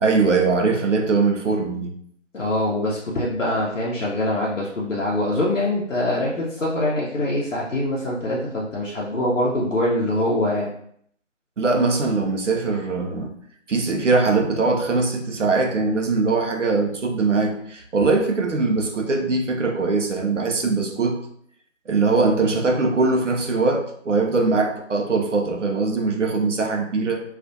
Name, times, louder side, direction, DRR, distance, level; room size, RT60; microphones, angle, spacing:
voice 1, 0.0-1.9 11.6-13.3 13.7-21.2 21.9-27.2, right 3 dB, 70° right, 2 dB, 0.5 m, -21 dB
voice 2, 2.3-10.7, left 1 dB, 75° left, -5 dB, 0.7 m, -24 dB
2.4 x 2.1 x 2.6 m, 0.66 s
figure-of-eight pair, 160°, 38 cm